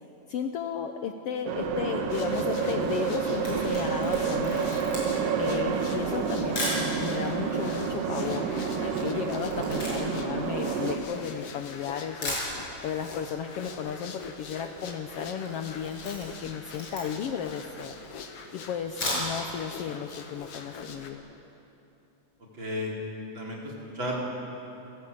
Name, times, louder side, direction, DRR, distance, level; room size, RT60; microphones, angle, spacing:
voice 1, 0.3-4.6 5.4-8.5 8.8-17.9 18.5-21.3, left 8 dB, 90° left, 6 dB, 1.3 m, -34 dB
sound 1, 1.5-11.0, right 6 dB, 85° right, 3.2 m, -29 dB
sound 2, 2.1-21.1, left 5 dB, 55° left, 2.2 m, -43 dB
Camera, 3.3-6.9 7.6-7.7 7.9-11.5 11.9-12.0 12.2-13.1 13.3-13.4 13.7-13.8 14.0-14.4 14.8-15.0 15.4-17.4 17.9-18.0 18.8-19.6 19.9-20.0 20.4-20.5, left 1 dB, 35° left, 7.6 m, -36 dB
voice 2, 22.5-22.9 23.3-24.2, left 1 dB, 35° right, -3 dB, 4.8 m, -33 dB
28.5 x 15.5 x 8.4 m, 2.9 s
omnidirectional pair, 3.7 m